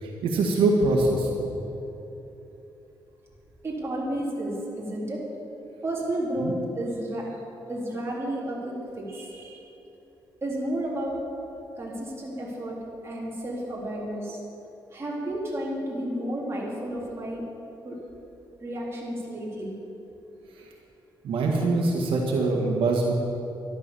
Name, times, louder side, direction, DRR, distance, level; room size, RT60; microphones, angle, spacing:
voice 1, 0.0-1.5 6.4-6.5 20.6-20.7 21.2-23.1, right 2 dB, 85° right, 0 dB, 1.8 m, -24 dB
voice 2, 3.6-5.2 5.8-7.3 7.7-9.6 10.4-11.2 11.8-12.8 13.0-14.4 14.9-17.4 17.8-18.0 18.6-19.7, right 1 dB, 30° right, -4 dB, 4.0 m, -32 dB
12.0 x 12.0 x 7.0 m, 2.9 s
cardioid pair, 105°, 9 cm